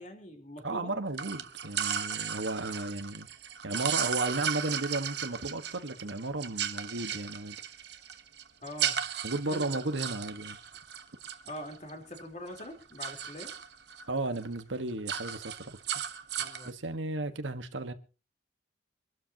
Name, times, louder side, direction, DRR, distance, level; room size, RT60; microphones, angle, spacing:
voice 1, 0.0-0.9 8.6-9.0 9.5-9.8 11.5-13.5 16.4-16.8, left 1 dB, 40° left, 3.8 m, -43 dB
voice 2, 0.6-3.3 3.6-7.6 9.2-10.6 14.1-15.8 16.6-17.9, right 2 dB, 90° right, 1.5 m, -34 dB
sound 1, 1.1-12.2 12.5-14.1 14.4-14.6 14.9-16.7, right 8 dB, 65° right, 1.2 m, -36 dB
25.5 x 12.5 x 2.9 m
head